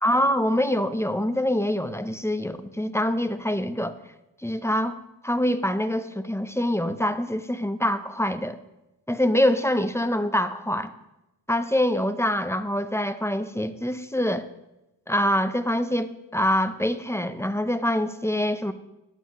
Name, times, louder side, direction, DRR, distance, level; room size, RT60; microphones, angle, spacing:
voice 1, 0.0-4.0 4.4-5.0 5.2-8.6 9.1-10.9 11.5-14.5 15.1-18.7, left 1 dB, 5° left, 11 dB, 0.7 m, -25 dB
20.5 x 8.0 x 3.1 m, 0.92 s
cardioid pair, 60°, 42 cm